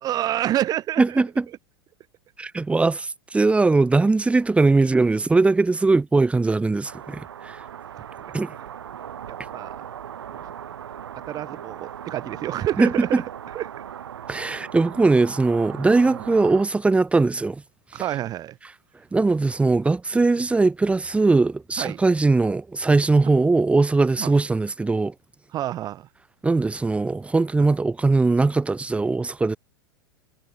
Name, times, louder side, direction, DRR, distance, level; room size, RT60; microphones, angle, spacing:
voice 1, 0.0-1.2 8.2-8.3 8.6-8.7 9.3-9.8 10.3-10.5 11.3-13.2 13.5-13.7 14.5-14.7 15.0-15.1 16.1-16.2 17.9-18.6 21.8-22.0 24.2-24.3 25.5-26.1, right 12 dB, 30° right, 0.5 m, -28 dB
voice 2, 1.0-1.4 2.4-7.6 8.3-8.5 12.8-13.2 14.3-17.6 19.1-25.1 26.4-29.6, right 3 dB, 10° right, 1.0 m, -20 dB
Traffic Noise, 6.8-16.7, right 9 dB, 75° right, 3.7 m, -38 dB
hypercardioid pair, 100°, 13 cm